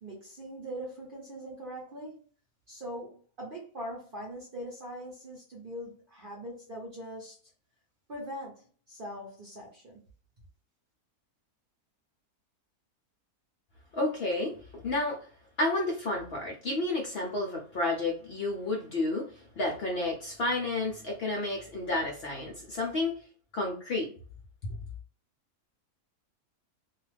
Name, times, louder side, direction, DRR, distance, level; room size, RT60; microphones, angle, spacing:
voice 1, 0.0-2.2 2.7-7.4 8.1-10.0, equal, 50° right, -3 dB, 0.7 m, -42 dB
voice 2, 13.9-15.2 15.6-23.1 23.5-24.1 24.6-24.8, left 2 dB, 65° left, 0 dB, 0.6 m, -31 dB
2.4 x 2.3 x 3.2 m, 0.42 s
omnidirectional pair, 1.6 m